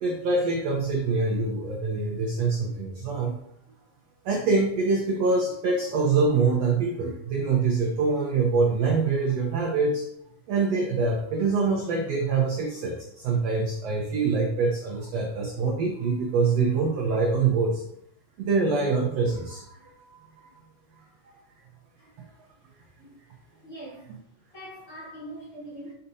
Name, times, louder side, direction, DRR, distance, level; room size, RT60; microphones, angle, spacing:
voice 1, 0.0-3.4 4.2-10.1 10.5-17.8 18.4-20.5 22.2-22.3, right 4 dB, 75° right, -1 dB, 1.5 m, -25 dB
voice 2, 23.6-24.1 24.5-25.9, right 1 dB, 40° left, -7 dB, 2.6 m, -41 dB
6.7 x 5.5 x 2.7 m, 0.73 s
omnidirectional pair, 4.0 m